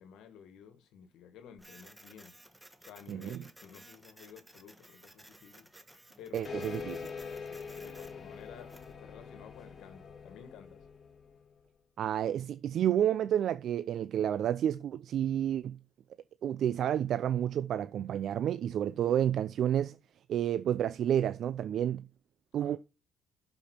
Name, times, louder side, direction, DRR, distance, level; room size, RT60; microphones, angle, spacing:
voice 1, 0.0-2.4 2.8-5.7 6.2-7.0 7.4-10.9 22.6-22.8, left 8 dB, 85° left, 1.6 m, -53 dB
Printer, 1.6-8.9, right 1 dB, 5° right, 1.3 m, -56 dB
voice 2, 6.3-7.0 12.0-15.8 16.4-20.0 20.3-22.1 22.5-22.8, right 10 dB, 65° right, 0.4 m, -30 dB
sound 1, 6.4-11.5, left 5 dB, 40° left, 2.0 m, -44 dB
11.5 x 5.3 x 4.3 m
cardioid pair, 105°, 0 cm